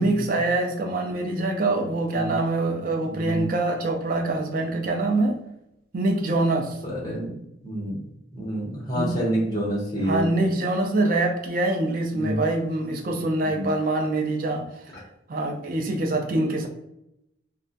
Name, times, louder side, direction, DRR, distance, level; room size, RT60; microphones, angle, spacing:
voice 1, 0.0-5.4 5.9-6.8 8.9-9.1 10.0-14.8 15.3-16.7, right 2 dB, 45° right, 3 dB, 0.4 m, -24 dB
voice 2, 3.0-3.5 6.8-7.3 7.6-8.0 8.3-10.2 12.1-12.4 13.4-13.7, right 1 dB, 20° left, -6 dB, 0.8 m, -28 dB
2.3 x 2.1 x 2.5 m, 0.83 s
head